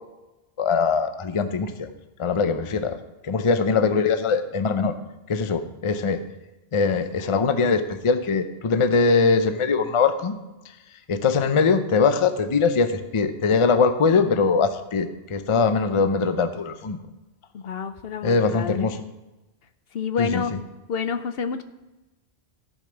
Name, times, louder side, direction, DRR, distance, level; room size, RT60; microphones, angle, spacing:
voice 1, 0.6-1.9 2.2-3.0 3.2-4.9 5.3-6.2 6.7-10.3 11.1-17.0 18.2-19.0 20.2-20.6, left 4 dB, 35° left, 10 dB, 0.6 m, -22 dB
voice 2, 17.5-18.9 19.9-20.5 20.9-21.6, left 6 dB, 65° left, 10 dB, 0.8 m, -28 dB
14.5 x 5.3 x 5.8 m, 1.1 s
omnidirectional pair, 1.1 m